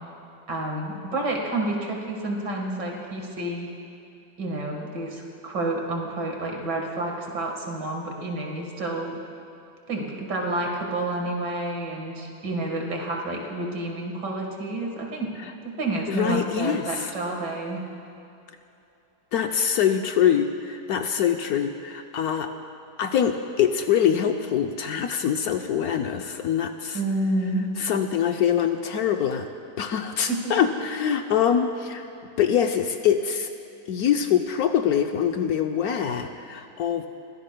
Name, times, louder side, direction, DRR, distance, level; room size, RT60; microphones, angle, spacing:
voice 1, 0.5-3.7 4.4-9.1 9.9-15.3 15.6-17.8 26.9-27.7 30.3-30.5, right 2 dB, 75° right, 1 dB, 2.2 m, -29 dB
voice 2, 16.1-17.1 19.3-22.5 23.0-27.0 27.8-29.5 29.8-32.0 32.4-33.5 33.9-37.1, left 8 dB, 65° left, 5 dB, 1.0 m, -24 dB
23.0 x 15.5 x 2.2 m, 2.8 s
omnidirectional pair, 1.9 m